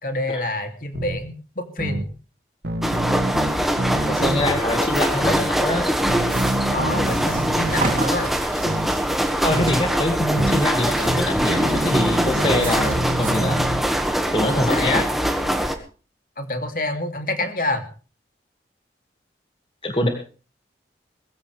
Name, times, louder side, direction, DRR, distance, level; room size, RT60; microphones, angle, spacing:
voice 1, 0.0-2.0 6.7-8.3 14.5-15.0 16.4-17.9, left 2 dB, 50° left, 6 dB, 2.8 m, -27 dB
sound 1, 0.9-1.2 1.8-2.0 2.6-4.6 5.2-5.5 6.1-8.0 8.6-8.9 9.5-9.8 10.4-10.6 11.0-13.8, right 1 dB, 70° right, 2.1 m, -26 dB
sound 2, 2.8-15.8, equal, ahead, 1.7 m, -23 dB
voice 2, 4.1-5.8 9.4-13.6 14.3-15.0 19.8-20.1, left 1 dB, 30° left, 4 dB, 2.1 m, -24 dB
sound 3, 6.3-13.3, right 3 dB, 50° right, 3.7 m, -35 dB
21.5 x 15.5 x 3.4 m, 0.38 s
head